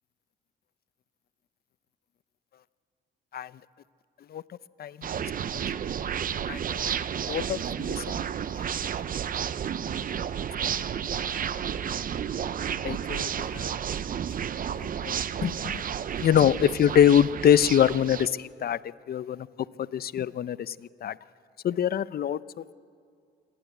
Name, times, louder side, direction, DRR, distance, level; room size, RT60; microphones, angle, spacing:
sound 1, 5.0-18.3, right 8 dB, 45° right, 0.6 m, -31 dB
voice 1, 6.5-7.0 7.3-8.2 12.8-13.7 14.8-15.1 15.4-15.8 16.2-18.8 19.1-19.5 19.8-20.7 21.0-21.2 21.6-22.7, left 9 dB, 50° left, 17 dB, 0.5 m, -24 dB
26.5 x 12.0 x 9.3 m, 2.3 s
cardioid pair, 90°, 20 cm